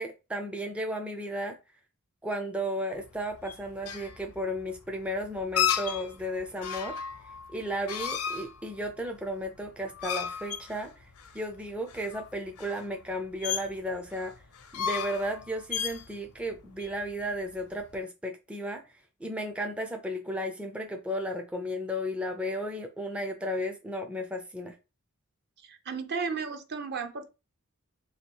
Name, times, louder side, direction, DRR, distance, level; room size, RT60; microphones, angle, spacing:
voice 1, 0.0-1.6 2.2-7.0 7.5-11.1 11.3-14.3 14.7-18.8 19.2-24.8, equal, 5° right, 0.4 m, -34 dB
sound 1, 3.0-17.9, left 8 dB, 80° left, 0.7 m, -35 dB
voice 2, 25.6-27.3, right 5 dB, 50° right, 0.6 m, -34 dB
3.0 x 2.7 x 4.4 m
head